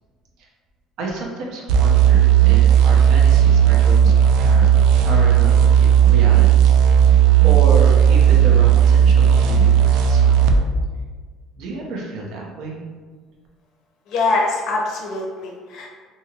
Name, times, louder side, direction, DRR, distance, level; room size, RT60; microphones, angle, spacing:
voice 1, 1.0-6.8 7.1-10.4 11.6-12.8, right 2 dB, 65° right, -1 dB, 0.7 m, -30 dB
sound 1, 1.7-10.6, right 9 dB, 85° right, 0.3 m, -13 dB
voice 2, 14.1-15.9, left 3 dB, 60° left, -1 dB, 0.6 m, -23 dB
2.8 x 2.7 x 2.8 m, 1.5 s
cardioid pair, 150°, 0 cm